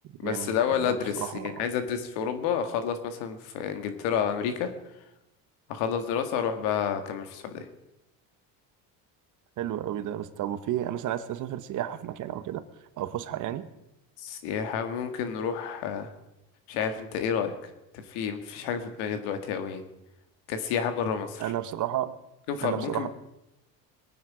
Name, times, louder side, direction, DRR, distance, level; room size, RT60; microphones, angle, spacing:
voice 1, 0.2-4.7 5.7-7.7 14.2-16.1 16.7-19.8 20.5-21.4 22.5-23.1, left 7 dB, 80° left, 8 dB, 2.0 m, -30 dB
voice 2, 0.8-1.6 9.6-12.6 13.0-13.7 21.4-22.1 22.6-23.1, right 12 dB, 50° right, 13 dB, 1.1 m, -32 dB
21.5 x 9.6 x 4.9 m, 0.90 s
cardioid pair, 115°, 38 cm